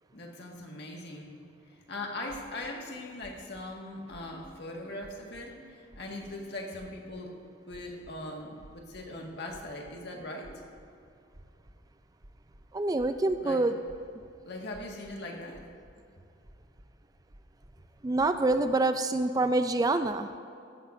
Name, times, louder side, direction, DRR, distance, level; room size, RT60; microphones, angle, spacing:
voice 1, 0.1-1.4 1.9-7.4 7.7-10.5 13.4-13.6 14.5-15.6, left 1 dB, 60° left, 0 dB, 1.9 m, -40 dB
sound 1, 2.3-2.7 3.2-3.6 4.1-4.6 5.0-5.4 5.9-6.3 6.8-7.2 7.7-8.1 8.6-9.1 9.5-10.0 10.4-11.0 11.3-11.8 12.2-13.4 13.9-14.3 14.7-15.2 15.5-16.0 16.4-16.9 17.3-17.8 18.2-18.6, equal, 65° right, 1.7 m, -54 dB
voice 2, 12.7-13.7 18.0-20.3, right 2 dB, 20° right, 9 dB, 0.3 m, -26 dB
16.0 x 13.0 x 2.7 m, 2.4 s
head